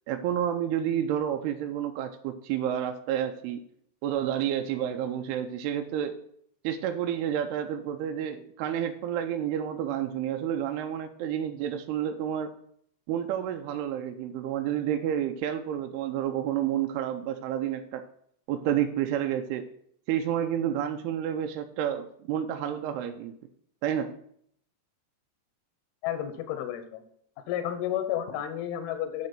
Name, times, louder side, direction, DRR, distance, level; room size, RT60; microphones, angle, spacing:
voice 1, 0.1-3.6 4.0-6.2 6.6-12.5 13.1-18.0 18.5-19.7 20.1-23.4 23.8-24.2, right 10 dB, 80° right, 6 dB, 2.4 m, -30 dB
voice 2, 26.0-27.0 27.5-29.3, left 11 dB, 75° left, 8 dB, 2.5 m, -31 dB
9.0 x 5.9 x 5.9 m, 0.67 s
omnidirectional pair, 5.1 m